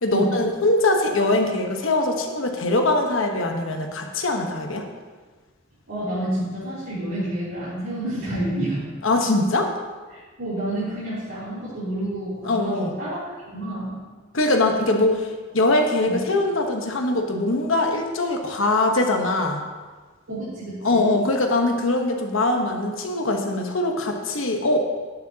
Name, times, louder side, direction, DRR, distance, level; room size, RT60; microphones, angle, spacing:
voice 1, 0.0-4.8 9.0-9.7 12.4-12.9 14.3-19.6 20.8-24.8, left 2 dB, 70° left, 3 dB, 1.1 m, -22 dB
voice 2, 5.9-8.9 10.1-14.0 15.1-15.2 16.1-16.2 20.3-21.1, right 1 dB, 70° right, -12 dB, 3.2 m, -29 dB
12.0 x 9.2 x 2.8 m, 1.4 s
head